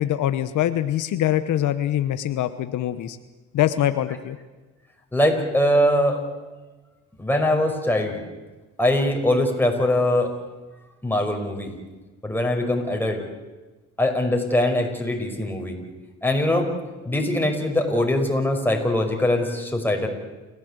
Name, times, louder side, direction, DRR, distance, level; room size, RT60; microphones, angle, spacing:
voice 1, 0.0-3.2 3.5-4.4, left 12 dB, 80° left, 11 dB, 1.1 m, -23 dB
voice 2, 5.1-6.2 7.2-8.2 8.8-10.3 11.0-11.7 12.2-13.2 14.0-15.8 16.2-16.7 17.0-20.1, left 1 dB, 5° left, 2 dB, 5.3 m, -22 dB
29.0 x 15.0 x 8.2 m, 1.2 s
cardioid pair, 90°, 30 cm